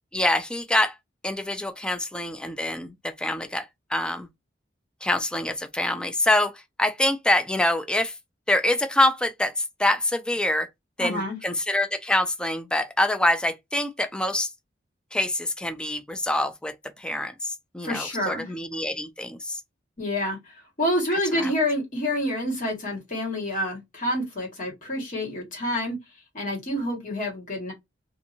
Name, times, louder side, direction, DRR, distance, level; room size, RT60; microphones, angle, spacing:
voice 1, 0.1-0.9 1.2-3.6 3.9-4.3 5.0-6.5 6.8-8.1 8.5-10.7 11.0-14.5 15.1-16.7 17.0-19.6 21.4-21.5, left 1 dB, 5° left, 0.3 m, -25 dB
voice 2, 11.0-11.4 17.8-18.5 20.0-20.4 20.8-26.0 26.3-27.7, left 1 dB, 45° left, 1.6 m, -28 dB
2.7 x 2.6 x 2.6 m
head